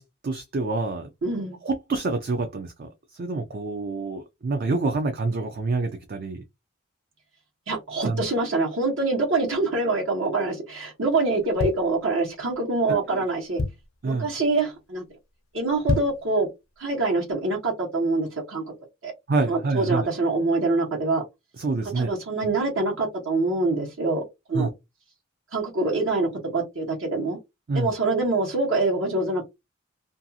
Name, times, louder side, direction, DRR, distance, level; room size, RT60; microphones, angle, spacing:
voice 1, 0.0-1.1 1.6-6.4 8.0-8.2 12.9-13.2 14.0-14.3 19.3-20.0 21.6-22.1 24.5-24.7 27.7-27.9, right 3 dB, 45° right, 0.4 m, -27 dB
voice 2, 1.2-1.6 7.7-13.6 14.0-15.0 15.5-16.5 16.8-18.6 19.0-19.1 19.5-21.2 21.9-24.2 24.5-24.7 25.5-27.4 27.7-29.4, right 2 dB, 70° right, 1.1 m, -25 dB
sound 1, 11.3-12.5 13.0-13.1 13.3-14.1 14.5-14.8 15.1-15.2 15.7-16.3 16.7-16.8, left 3 dB, 70° left, 0.5 m, -29 dB
2.6 x 2.3 x 2.6 m
head